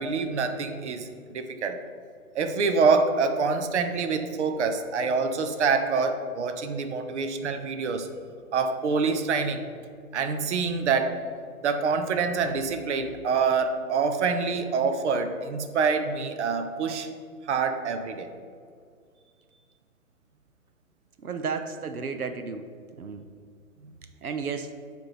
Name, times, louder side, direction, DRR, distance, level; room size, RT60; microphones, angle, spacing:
voice 1, 0.0-1.8 2.3-8.1 8.5-9.7 10.1-11.1 11.6-17.1 17.5-18.3, right 5 dB, 55° right, 7 dB, 0.7 m, -26 dB
voice 2, 21.2-22.7 23.0-23.2 24.2-24.7, right 5 dB, 90° right, 8 dB, 0.7 m, -33 dB
7.5 x 3.5 x 5.9 m, 2.1 s
figure-of-eight pair, 130°, 43 cm